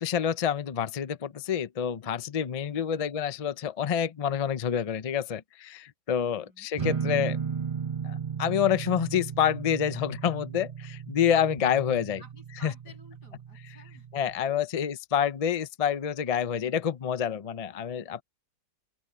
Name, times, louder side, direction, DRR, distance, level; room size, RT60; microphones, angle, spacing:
voice 1, 0.0-7.4 8.0-12.2 12.6-12.7 14.1-18.2, left 8 dB, 65° left, 0.3 m, -28 dB
voice 2, 2.7-3.1 6.3-6.7 11.7-14.1, equal, 90° left, 8.4 m, -55 dB
sound 1, 6.8-14.4, right 7 dB, 30° right, 0.7 m, -35 dB
open air
omnidirectional pair, 1.7 m